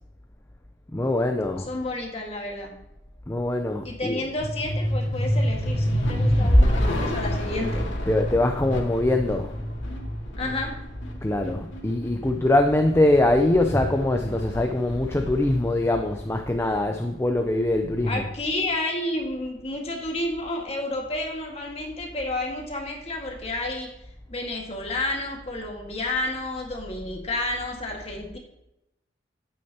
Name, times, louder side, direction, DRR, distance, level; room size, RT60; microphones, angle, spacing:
voice 1, 0.9-1.7 3.3-4.3 8.1-9.6 11.2-18.3, left 1 dB, 15° left, 4 dB, 0.5 m, -23 dB
voice 2, 1.7-2.7 3.8-7.8 10.4-10.7 18.1-23.9 24.3-28.4, left 2 dB, 35° left, 0 dB, 1.8 m, -30 dB
sound 1, 4.4-16.9, equal, 85° left, 2.4 m, -27 dB
9.8 x 8.7 x 2.9 m, 0.86 s
head